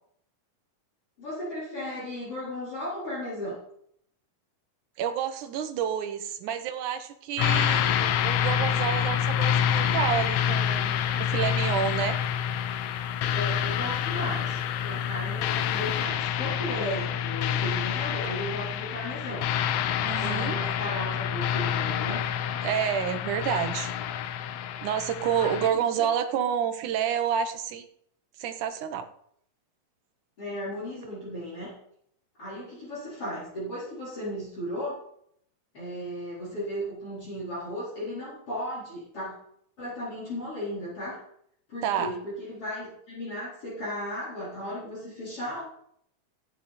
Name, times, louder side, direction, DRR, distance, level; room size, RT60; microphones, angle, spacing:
voice 1, 1.2-3.6 13.3-19.5 20.2-22.3 25.4-26.1 30.4-31.8 32.4-35.0 35.7-39.4 39.8-41.3 41.7-45.6, left 1 dB, 40° left, -7 dB, 5.1 m, -35 dB
voice 2, 5.0-12.2 16.8-17.1 20.0-20.6 22.6-23.9 24.8-27.8 28.4-29.1 41.8-42.1, right 8 dB, 70° right, 8 dB, 2.5 m, -29 dB
sound 1, 7.4-25.7, left 9 dB, 75° left, 1.8 m, -27 dB
15.5 x 10.0 x 4.3 m, 0.69 s
omnidirectional pair, 3.8 m